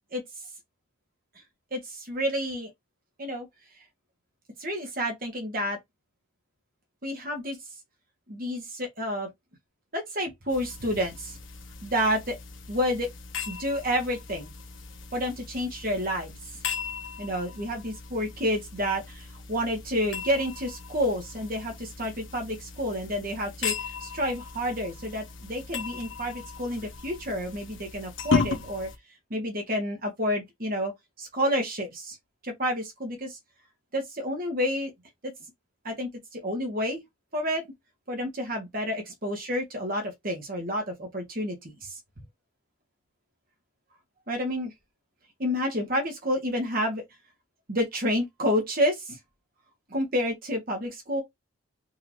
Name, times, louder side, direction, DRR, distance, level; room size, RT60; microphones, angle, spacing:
voice 1, 1.7-2.7 3.2-3.5 4.6-5.8 7.0-7.6 8.3-9.3 9.9-11.4 11.8-12.4 12.7-13.1 13.5-14.5 15.1-16.3 17.2-28.9 29.3-30.9 31.2-32.2 32.4-33.4 33.9-34.9 35.2-35.3 35.8-37.0 37.3-37.6 38.1-42.0 44.3-44.7 45.4-47.0 47.7-49.2 49.9-51.2, equal, 40° right, 1.3 m, -29 dB
sound 1, 10.5-29.0, left 4 dB, 60° left, 1.1 m, -36 dB
3.8 x 2.8 x 3.0 m
head